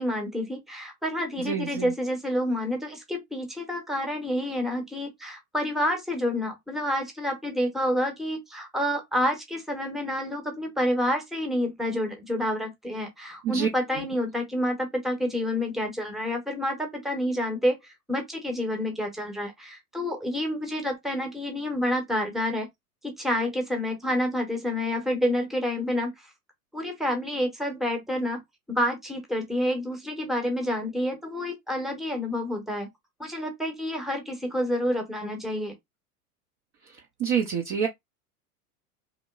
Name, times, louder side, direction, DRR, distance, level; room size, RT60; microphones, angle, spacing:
voice 1, 0.0-22.7 23.0-26.3 26.7-28.4 28.7-32.9 33.2-35.7, left 1 dB, ahead, 0.7 m, -28 dB
voice 2, 1.4-1.9 13.4-13.7 37.2-37.9, right 7 dB, 30° right, 0.4 m, -26 dB
3.0 x 2.1 x 2.2 m
hypercardioid pair, 90°, 45 cm